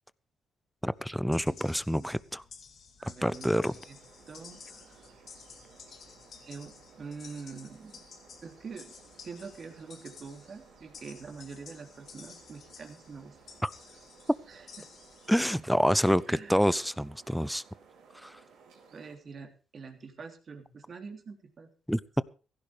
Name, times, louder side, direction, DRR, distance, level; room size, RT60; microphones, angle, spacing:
voice 1, 0.8-2.4 3.2-3.7 13.6-13.7 15.3-17.6 18.2-18.4 21.9-22.2, equal, ahead, 0.6 m, -27 dB
sound 1, 0.9-15.3, left 6 dB, 60° left, 2.5 m, -53 dB
voice 2, 3.0-3.5 3.9-4.0 4.3-5.0 6.4-8.1 8.4-8.9 9.2-13.4 14.5-14.9 16.3-16.6 18.9-21.7, right 5 dB, 45° right, 3.2 m, -45 dB
sound 2, 3.3-19.2, right 5 dB, 85° right, 5.3 m, -58 dB
16.0 x 15.0 x 3.5 m
cardioid pair, 90°, 0 cm